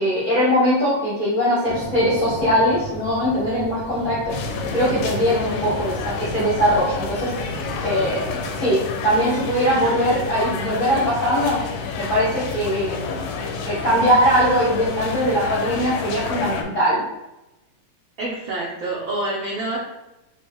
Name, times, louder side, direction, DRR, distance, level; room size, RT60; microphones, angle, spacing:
voice 1, 0.0-4.3 4.7-7.3 7.8-11.6 12.0-13.2 13.6-17.0, equal, 50° left, -9 dB, 0.9 m, -21 dB
sound 1, 1.6-8.6, right 3 dB, 50° right, 0.8 m, -35 dB
sound 2, 4.3-16.6, left 5 dB, 80° left, 1.8 m, -29 dB
voice 2, 18.2-19.8, right 2 dB, 85° right, -5 dB, 1.0 m, -27 dB
5.5 x 2.5 x 3.5 m, 0.95 s
omnidirectional pair, 3.4 m